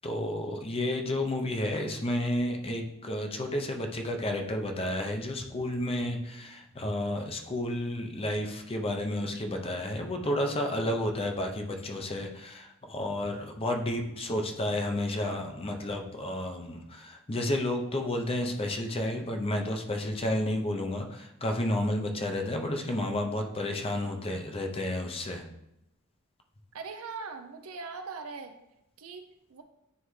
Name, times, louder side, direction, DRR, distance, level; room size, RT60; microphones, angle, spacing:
voice 1, 0.0-25.4, left 1 dB, 25° left, 3 dB, 0.6 m, -31 dB
voice 2, 26.7-28.5 29.0-29.2 29.5-29.6, right 4 dB, 70° right, 7 dB, 0.6 m, -40 dB
9.3 x 3.4 x 3.2 m, 0.85 s
head